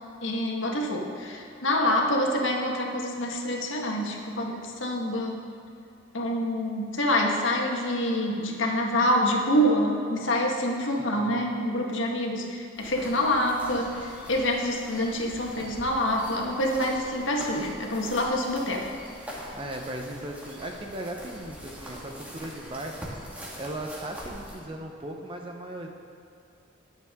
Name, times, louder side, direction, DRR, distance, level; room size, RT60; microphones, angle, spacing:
voice 1, 0.2-5.4 6.1-18.9, equal, 80° left, 0 dB, 1.6 m, -26 dB
voice 2, 11.0-11.3 19.5-25.9, right 1 dB, 25° right, 2 dB, 0.9 m, -37 dB
sound 1, 12.8-24.6, equal, 10° right, 1.9 m, -43 dB
21.0 x 7.4 x 3.7 m, 2.7 s
head